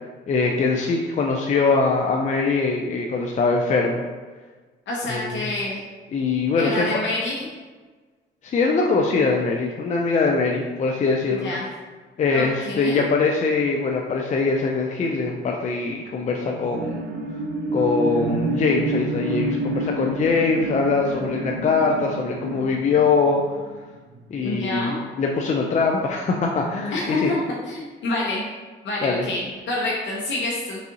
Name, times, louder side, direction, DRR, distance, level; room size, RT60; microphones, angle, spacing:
voice 1, 0.3-4.0 5.1-5.4 6.1-6.9 8.4-11.5 12.2-17.0 17.7-23.4 24.3-24.9 25.2-27.3 29.0-29.3, left 4 dB, 35° left, 0 dB, 0.4 m, -22 dB
voice 2, 4.9-5.8 6.6-7.5 11.3-11.7 12.3-13.0 24.4-25.0 26.9-28.4 28.8-30.8, left 2 dB, 65° left, -4 dB, 0.8 m, -27 dB
sound 1, 16.5-24.3 24.8-24.9, right 1 dB, 80° right, 0.6 m, -29 dB
4.1 x 3.5 x 2.8 m, 1.4 s
cardioid pair, 90°, 20 cm